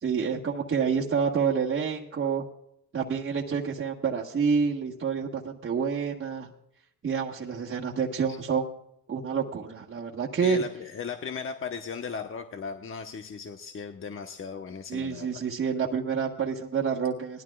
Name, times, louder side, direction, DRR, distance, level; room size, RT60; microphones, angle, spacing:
voice 1, 0.0-2.4 2.9-6.5 7.0-8.7 9.1-10.6 14.9-17.4, right 6 dB, 40° right, -3 dB, 1.5 m, -28 dB
voice 2, 10.4-15.4, left 6 dB, 45° left, 5 dB, 1.1 m, -37 dB
19.0 x 12.5 x 2.4 m, 0.79 s
cardioid pair, 90°, 30 cm